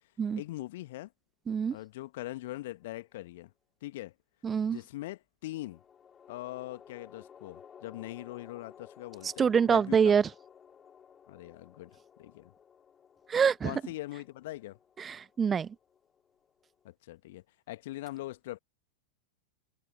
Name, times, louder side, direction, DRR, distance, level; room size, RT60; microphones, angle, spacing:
voice 1, 0.4-1.1 1.7-3.5 3.8-4.1 4.7-5.8 6.3-10.2 11.3-12.5 13.6-14.8 16.8-18.6, left 17 dB, 55° left, 2.0 m, -42 dB
sound 1, 2.7-3.3 5.6-16.9, left 7 dB, 20° left, 5.3 m, -56 dB
voice 2, 4.4-4.8 9.2-10.2 13.3-13.7 15.0-15.7, right 7 dB, 20° right, 1.2 m, -25 dB
figure-of-eight pair, 90°, 0 cm